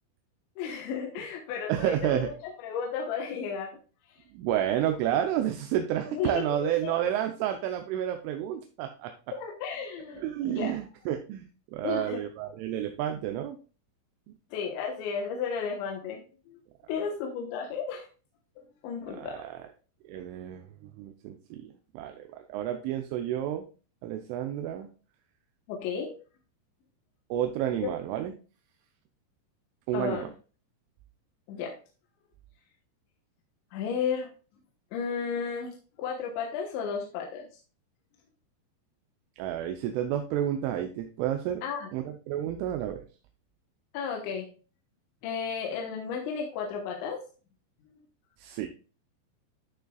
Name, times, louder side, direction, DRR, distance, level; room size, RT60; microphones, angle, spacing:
voice 1, 0.6-3.7 6.1-6.9 9.3-10.8 11.8-12.2 14.5-16.2 16.5-16.6 16.9-18.1 18.8-19.4 25.7-26.1 29.9-30.2 31.5-31.7 33.7-34.3 34.9-37.5 41.6-41.9 43.9-44.5 45.2-47.2, left 6 dB, 75° left, 0 dB, 3.3 m, -33 dB
voice 2, 1.7-2.3 4.3-9.1 10.1-13.6 19.1-19.6 20.0-23.6 24.0-24.9 27.3-28.3 29.9-30.3 39.4-41.6 41.9-43.0 48.4-48.7, right 11 dB, 85° right, 5 dB, 3.2 m, -30 dB
12.0 x 6.6 x 2.3 m, 0.36 s
omnidirectional pair, 5.6 m